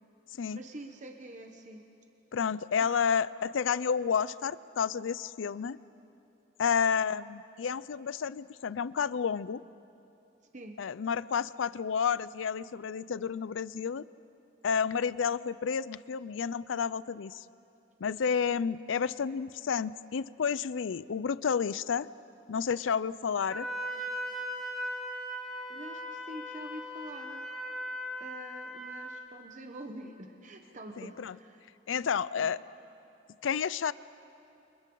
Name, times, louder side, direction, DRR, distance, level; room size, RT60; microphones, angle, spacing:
voice 1, 0.5-1.8 2.9-3.1 10.5-10.8 25.7-27.4 28.2-31.6 32.4-32.5, right 1 dB, 40° right, 4 dB, 1.1 m, -46 dB
voice 2, 2.3-5.8 6.6-9.6 10.8-14.1 14.6-17.4 18.0-22.1 22.5-23.7 31.0-31.4 31.9-32.6 33.4-33.9, left 6 dB, 80° left, 18 dB, 0.4 m, -30 dB
Wind instrument woodwind instrument, 23.5-29.3, equal, ahead, 2.5 m, -38 dB
29.5 x 27.5 x 3.9 m, 2.9 s
head